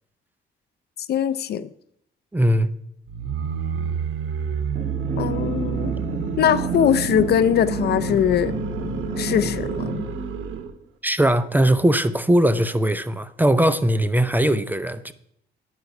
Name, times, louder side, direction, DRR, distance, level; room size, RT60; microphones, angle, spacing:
voice 1, 1.0-1.7 5.2-5.9 6.4-8.5 9.2-9.9, left 9 dB, 55° left, 0.4 m, -21 dB
voice 2, 2.3-2.7 11.0-15.1, right 1 dB, 10° right, 0.5 m, -20 dB
sound 1, 3.1-10.8, right 6 dB, 80° right, 0.9 m, -29 dB
sound 2, 4.7-10.1, right 2 dB, 45° right, 1.7 m, -30 dB
9.7 x 5.8 x 5.3 m
cardioid pair, 90°, 20 cm